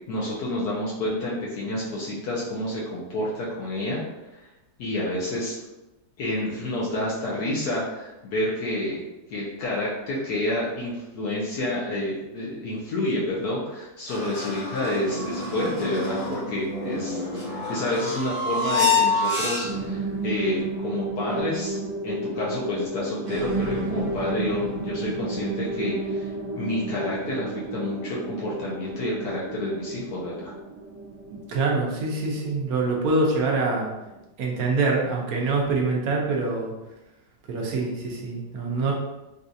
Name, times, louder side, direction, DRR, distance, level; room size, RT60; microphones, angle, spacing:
voice 1, 0.1-4.0 4.3-4.5 4.8-5.6 6.2-9.0 9.3-17.2 17.7-21.8 22.0-26.3 26.6-30.5, left 1 dB, 75° left, -6 dB, 1.2 m, -29 dB
sound 1, 14.1-20.0, left 3 dB, 35° left, 0.5 m, -27 dB
sound 2, 19.6-34.2, right 2 dB, 90° right, 1.2 m, -32 dB
voice 2, 31.3-33.9 34.4-36.7 37.5-38.9, right 3 dB, 70° right, -1 dB, 1.1 m, -25 dB
4.1 x 2.3 x 2.6 m, 1.0 s
omnidirectional pair, 1.7 m